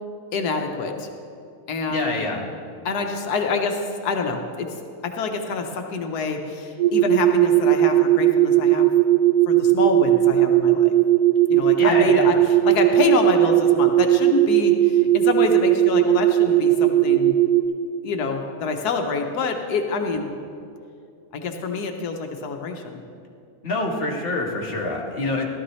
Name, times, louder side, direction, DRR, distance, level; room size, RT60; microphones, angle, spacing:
voice 1, 0.3-1.1 1.7-2.3 2.8-4.7 5.0-8.9 9.5-10.9 11.5-17.4 18.0-20.3 21.3-23.0, left 4 dB, 90° left, 4 dB, 1.4 m, -26 dB
voice 2, 1.9-2.5 11.8-12.4 23.6-25.5, left 2 dB, 40° left, -1 dB, 1.6 m, -26 dB
sound 1, 6.8-17.6, right 13 dB, 85° right, 1.2 m, -17 dB
15.5 x 12.5 x 3.2 m, 2.4 s
omnidirectional pair, 1.6 m